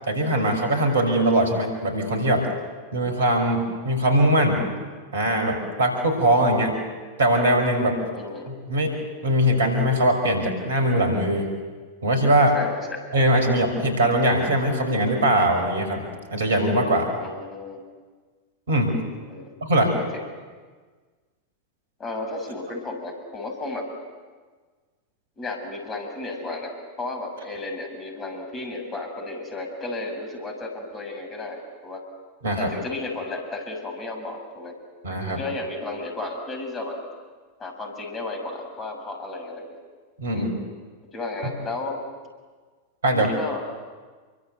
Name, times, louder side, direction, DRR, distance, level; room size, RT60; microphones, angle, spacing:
voice 1, 0.1-2.5 2.9-4.7 5.1-6.8 7.2-8.0 8.5-8.9 9.2-11.5 12.0-12.6 13.1-17.1 18.7-19.0 19.6-19.9 32.4-32.7 35.0-35.4 40.2-40.5 43.0-43.3, right 1 dB, 65° right, 5 dB, 5.9 m, -21 dB
voice 2, 8.1-8.5 12.5-13.0 17.2-17.8 19.3-19.5 20.0-20.2 22.0-23.9 25.4-26.7 27.0-32.0 32.6-34.7 35.3-37.0 37.6-39.7 40.3-40.5 41.1-42.0 43.1-43.6, left 2 dB, 20° left, 4 dB, 6.4 m, -33 dB
29.0 x 24.0 x 8.2 m, 1.5 s
figure-of-eight pair, 90°, 0 cm